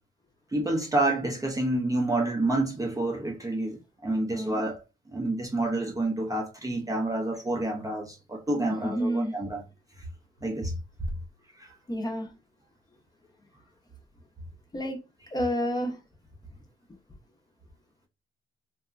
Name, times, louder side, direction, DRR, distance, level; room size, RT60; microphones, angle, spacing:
voice 1, 0.5-4.8 5.1-9.6 10.4-10.7 11.6-11.7, right 2 dB, 15° right, 0.6 m, -28 dB
voice 2, 4.3-4.6 8.6-9.3 11.9-12.3 14.7-15.0 15.3-16.0, equal, 20° left, 0.7 m, -29 dB
2.8 x 2.2 x 2.4 m
cardioid pair, 90°, 20 cm